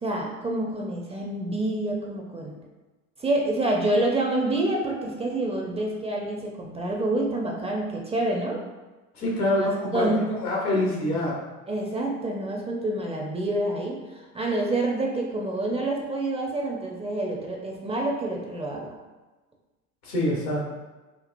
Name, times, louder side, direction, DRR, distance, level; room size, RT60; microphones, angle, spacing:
voice 1, 0.0-2.6 3.2-8.6 9.4-10.3 11.7-18.9, right 2 dB, 15° right, -1 dB, 0.5 m, -27 dB
voice 2, 9.1-10.1 10.4-11.3 20.0-20.6, left 1 dB, 80° left, -4 dB, 1.3 m, -25 dB
4.5 x 2.4 x 2.5 m, 1.2 s
figure-of-eight pair, 65°, 43 cm